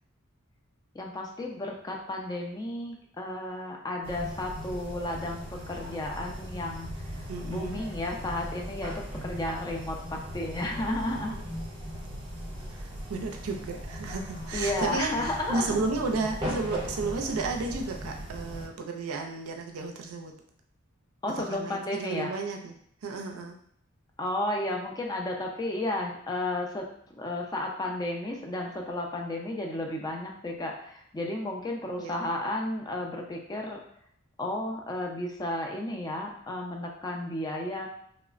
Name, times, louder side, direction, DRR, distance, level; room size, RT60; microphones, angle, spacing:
voice 1, 0.9-11.4 14.5-15.8 21.2-22.4 24.2-26.9 27.2-33.8 34.4-37.9, left 1 dB, 20° left, 1 dB, 0.3 m, -33 dB
sound 1, 4.0-18.7, equal, 25° right, 0.7 m, -38 dB
voice 2, 7.3-7.8 12.7-20.3 21.4-22.7 23.0-23.6 31.9-32.1, right 3 dB, 80° right, 2 dB, 0.4 m, -33 dB
3.0 x 2.0 x 2.4 m, 0.65 s
head